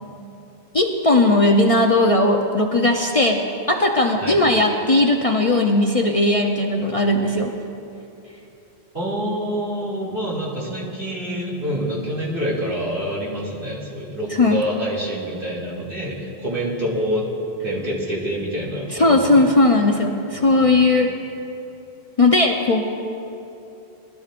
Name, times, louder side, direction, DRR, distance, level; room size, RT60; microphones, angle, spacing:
voice 1, 0.7-7.5 14.4-14.6 19.0-21.1 22.2-22.8, left 2 dB, 35° left, 1 dB, 0.7 m, -17 dB
voice 2, 8.9-17.3 17.6-19.4 20.3-20.9, equal, 60° right, -6 dB, 2.8 m, -27 dB
21.5 x 12.5 x 2.5 m, 2.9 s
omnidirectional pair, 1.0 m